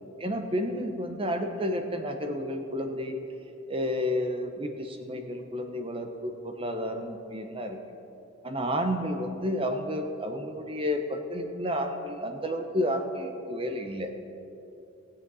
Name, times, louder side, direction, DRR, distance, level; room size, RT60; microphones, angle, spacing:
voice 1, 0.2-3.1 3.7-7.8 8.4-14.1, equal, 25° right, 5 dB, 0.9 m, -31 dB
19.5 x 7.2 x 4.1 m, 2.9 s
head